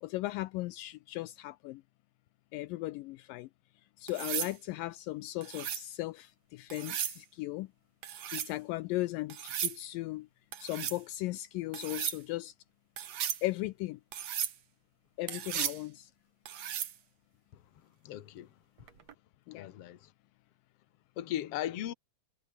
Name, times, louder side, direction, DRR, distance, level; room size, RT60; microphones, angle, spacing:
voice 1, 0.0-1.8 2.5-3.5 4.0-7.7 8.3-10.3 10.6-12.5 13.4-14.0 15.2-16.1 19.5-19.7, left 18 dB, 80° left, 2.2 m, -37 dB
sound 1, 4.1-4.5 5.4-5.9 6.7-7.2 8.0-8.5 9.3-9.8 10.5-11.0 11.7-12.2 13.0-13.4 14.1-14.6 15.3-15.8 16.5-17.0 18.9-19.1, right 10 dB, 55° right, 2.5 m, -36 dB
voice 2, 18.0-18.5 19.5-20.1 21.2-21.9, left 12 dB, 55° left, 2.0 m, -37 dB
omnidirectional pair, 4.2 m